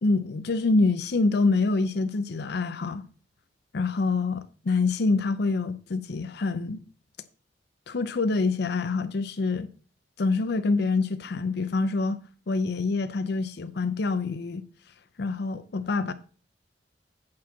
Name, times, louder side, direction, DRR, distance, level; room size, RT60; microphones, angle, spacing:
voice 1, 0.0-3.1 3.7-6.8 7.9-9.7 10.2-12.2 12.5-14.6 15.2-16.1, left 3 dB, 65° left, 0.6 m, -26 dB
8.5 x 4.4 x 7.3 m
head